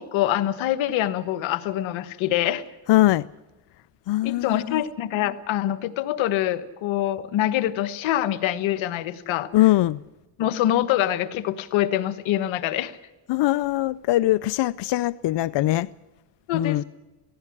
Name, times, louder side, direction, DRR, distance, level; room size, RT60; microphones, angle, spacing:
voice 1, 0.0-2.6 4.2-9.5 10.4-12.9 16.5-16.8, left 12 dB, 90° left, 1.3 m, -25 dB
voice 2, 2.9-3.3 4.1-4.8 9.5-10.0 13.3-15.9 16.5-16.8, left 16 dB, 65° left, 0.6 m, -21 dB
18.0 x 16.0 x 9.8 m
supercardioid pair, 60°, 46 cm